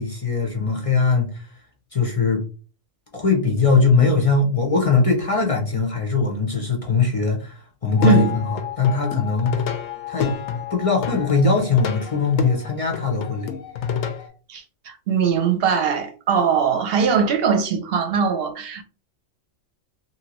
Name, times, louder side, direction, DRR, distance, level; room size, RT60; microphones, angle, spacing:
voice 1, 0.0-1.5 1.9-2.4 3.1-9.6 10.1-10.4 10.7-13.5, left 4 dB, 40° left, 0.5 m, -21 dB
Plucked string instrument, 7.9-14.3, left 8 dB, 90° left, 1.0 m, -29 dB
voice 2, 14.5-18.8, right 6 dB, 60° right, 0.7 m, -21 dB
3.0 x 2.7 x 2.9 m
omnidirectional pair, 1.3 m